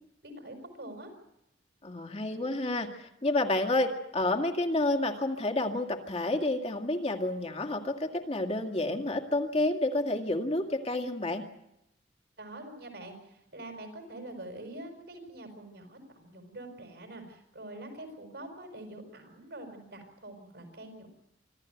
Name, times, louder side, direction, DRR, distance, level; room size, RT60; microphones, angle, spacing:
voice 1, 0.2-1.1 12.4-21.1, right 1 dB, 75° right, 4 dB, 5.6 m, -45 dB
voice 2, 1.8-11.4, left 2 dB, 35° left, 3 dB, 2.1 m, -29 dB
25.5 x 14.0 x 9.2 m, 0.85 s
head